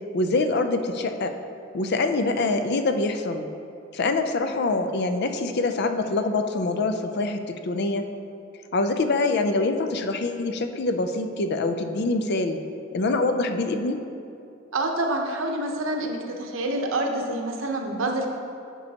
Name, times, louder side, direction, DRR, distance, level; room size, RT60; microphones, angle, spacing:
voice 1, 0.1-1.3 1.7-3.5 3.9-8.1 8.7-12.6 12.9-14.0, left 3 dB, 55° left, 7 dB, 0.5 m, -25 dB
voice 2, 14.7-18.3, right 2 dB, 80° right, 2 dB, 0.8 m, -27 dB
10.5 x 5.5 x 2.9 m, 2.6 s
head